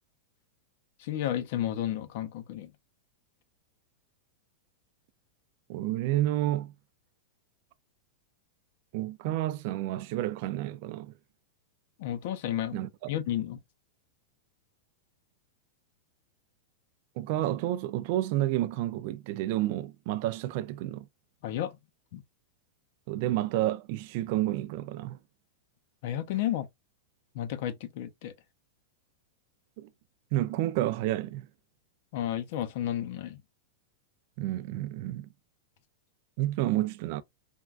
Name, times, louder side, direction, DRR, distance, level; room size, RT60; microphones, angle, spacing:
voice 1, 1.0-2.7 12.0-13.6 21.4-21.8 22.1-22.2 26.0-26.7 27.3-28.3 32.1-33.4, left 11 dB, 50° left, 0.5 m, -32 dB
voice 2, 5.7-6.7 8.9-11.1 12.7-12.9 17.2-21.1 23.1-25.2 29.8-29.9 30.3-31.5 34.4-35.3 36.4-37.2, right 15 dB, 45° right, 0.3 m, -30 dB
3.5 x 2.2 x 2.4 m
supercardioid pair, 165°, 0 cm